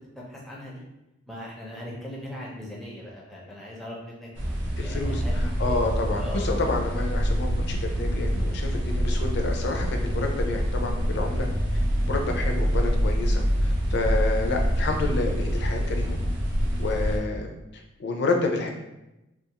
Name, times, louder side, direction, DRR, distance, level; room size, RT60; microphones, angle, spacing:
voice 1, 0.2-0.8 1.3-4.3 4.8-5.8 6.2-6.5 17.0-17.2, left 1 dB, ahead, -4 dB, 0.5 m, -39 dB
sound 1, 4.3-17.2, equal, 65° right, 0.5 m, -26 dB
voice 2, 4.8-16.2 16.8-17.5 18.0-18.7, left 3 dB, 55° left, 3 dB, 0.4 m, -29 dB
2.4 x 2.4 x 2.8 m, 0.94 s
head